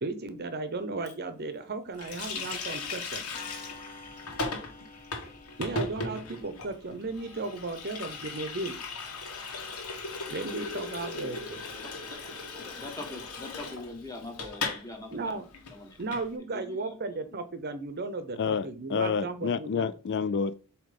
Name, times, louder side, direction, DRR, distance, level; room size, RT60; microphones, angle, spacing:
voice 1, 0.0-3.3 5.6-8.8 10.3-11.6 15.1-15.4 16.0-19.9, right 3 dB, 45° right, 0.8 m, -35 dB
Clock, 1.0-1.2 2.2-2.3 2.5-2.8 3.3-6.6, left 3 dB, 35° left, 1.1 m, -49 dB
Water tap faucet, 2.0-14.9 15.1-15.2 15.5-16.3, left 3 dB, 85° left, 1.5 m, -37 dB
voice 2, 11.0-12.2 12.6-16.0 16.5-17.2, left 2 dB, 15° left, 1.4 m, -44 dB
voice 3, 18.4-20.5, left 6 dB, 55° left, 0.4 m, -29 dB
7.5 x 3.0 x 5.2 m
head